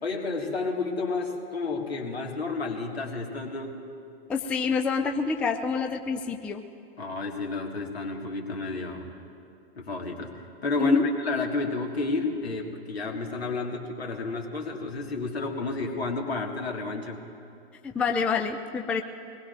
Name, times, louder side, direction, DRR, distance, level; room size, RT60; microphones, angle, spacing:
voice 1, 0.0-3.8 7.0-9.1 9.8-10.3 10.6-17.2, left 3 dB, 80° left, 1 dB, 2.0 m, -31 dB
voice 2, 4.3-6.6 10.8-11.1 17.8-19.0, left 5 dB, 5° left, 5 dB, 0.3 m, -27 dB
23.0 x 19.5 x 2.6 m, 2.5 s
figure-of-eight pair, 105°, 31 cm